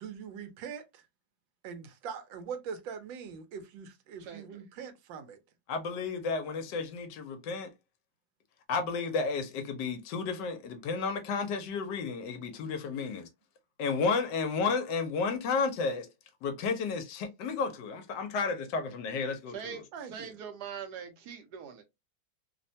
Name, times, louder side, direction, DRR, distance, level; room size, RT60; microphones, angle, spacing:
voice 1, 0.0-1.0 1.6-5.4 19.9-20.3, right 6 dB, 85° right, 1.4 m, -42 dB
voice 2, 4.2-4.6 19.5-19.8 20.1-21.8, right 7 dB, 70° right, 1.1 m, -42 dB
voice 3, 5.7-7.7 8.7-13.3 13.8-16.1 16.4-19.8, left 4 dB, 75° left, 1.2 m, -32 dB
3.2 x 2.1 x 2.6 m
omnidirectional pair, 2.0 m